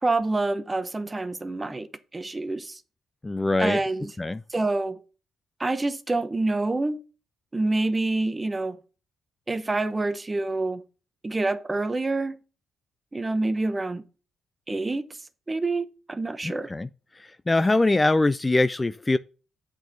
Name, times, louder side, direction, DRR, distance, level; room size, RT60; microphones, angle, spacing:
voice 1, 0.0-2.8 3.6-4.1 4.5-5.0 5.6-7.0 7.5-8.8 9.5-10.8 11.2-12.4 13.1-14.0 14.7-15.1 15.5-16.7, right 2 dB, 20° right, 0.8 m, -27 dB
voice 2, 3.2-3.8 4.2-4.4 16.4-16.9 17.2-19.2, left 2 dB, 20° left, 0.3 m, -23 dB
8.2 x 4.6 x 5.1 m
cardioid pair, 90°, 0 cm